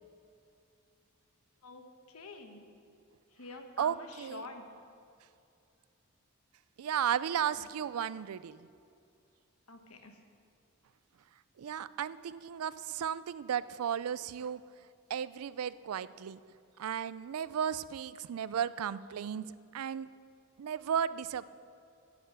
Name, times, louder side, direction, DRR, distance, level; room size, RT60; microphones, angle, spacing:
voice 1, 1.6-2.7 3.3-4.7 9.7-10.1, left 3 dB, 85° left, 5 dB, 1.2 m, -48 dB
voice 2, 3.8-4.5 6.8-8.7 11.6-14.6 15.1-16.4 16.8-19.5 19.7-20.1 20.6-21.4, right 8 dB, 85° right, 17 dB, 0.4 m, -34 dB
10.0 x 8.0 x 7.6 m, 2.5 s
head